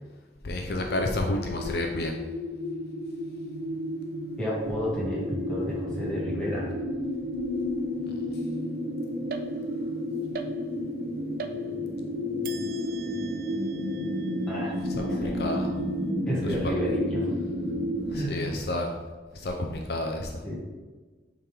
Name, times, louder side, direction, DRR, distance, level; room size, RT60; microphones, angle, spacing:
voice 1, 0.4-2.2 8.0-8.2 14.9-15.7 16.4-16.8 18.0-19.0 19.3-20.4, left 1 dB, 60° left, 2 dB, 0.6 m, -31 dB
sound 1, 0.7-18.1, left 1 dB, 85° right, 1.6 m, -32 dB
voice 2, 4.4-6.7 14.5-15.3 16.3-17.3 18.1-18.4 20.4-20.6, equal, 5° left, -8 dB, 2.0 m, -31 dB
sound 2, 9.3-9.9 10.3-11.0 11.4-12.0 12.4-15.9, right 4 dB, 55° right, 0.4 m, -43 dB
8.5 x 3.8 x 3.4 m, 1.3 s
head